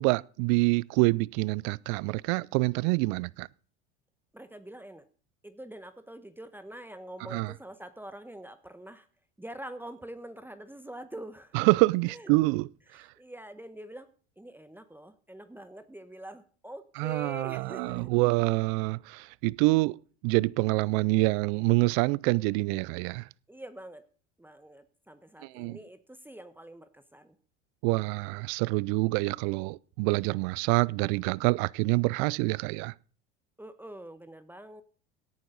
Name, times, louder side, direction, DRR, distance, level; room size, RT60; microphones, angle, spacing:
voice 1, 0.0-3.5 7.3-7.5 11.5-13.1 17.0-20.0 20.2-23.3 25.4-25.8 27.8-32.9, right 24 dB, 60° right, 0.5 m, -26 dB
voice 2, 4.3-5.1 5.4-9.1 9.4-11.6 12.1-12.3 12.9-14.1 14.4-18.1 23.5-24.1 24.4-27.3 33.6-34.8, right 1 dB, 5° right, 1.1 m, -45 dB
17.5 x 9.3 x 4.0 m
hypercardioid pair, 80°, 35 cm